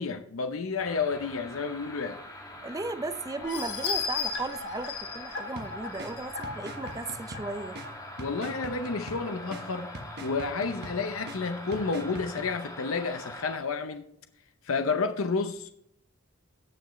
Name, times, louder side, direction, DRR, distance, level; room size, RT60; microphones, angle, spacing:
voice 1, 0.0-2.2 8.2-9.9 10.2-14.1 14.6-15.7, left 4 dB, 75° left, 0.7 m, -30 dB
sound 1, 0.8-13.6, left 1 dB, 20° left, 2.3 m, -43 dB
voice 2, 2.6-7.8, right 3 dB, 15° right, 0.6 m, -35 dB
sound 2, 3.4-7.9 8.4-8.5 8.9-9.0, left 6 dB, 60° left, 2.0 m, -35 dB
sound 3, 5.6-12.5, right 1 dB, 55° right, 1.3 m, -44 dB
17.5 x 6.2 x 3.2 m
head